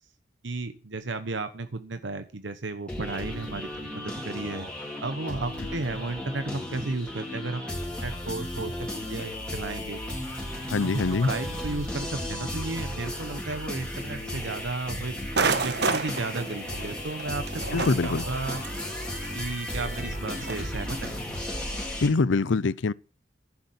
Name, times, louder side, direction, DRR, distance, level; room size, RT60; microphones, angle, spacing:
voice 1, 0.4-4.7 5.0-7.7 8.0-10.0 10.8-15.2 15.6-18.6 19.3-21.3, right 3 dB, 80° right, 1.1 m, -34 dB
sound 1, 2.9-22.1, left 1 dB, 5° left, 3.7 m, -35 dB
voice 2, 10.7-11.3 17.7-18.2 22.0-22.9, left 3 dB, 90° left, 0.6 m, -24 dB
sound 2, 15.3-20.7, right 4 dB, 65° right, 1.4 m, -31 dB
11.0 x 8.0 x 8.3 m
head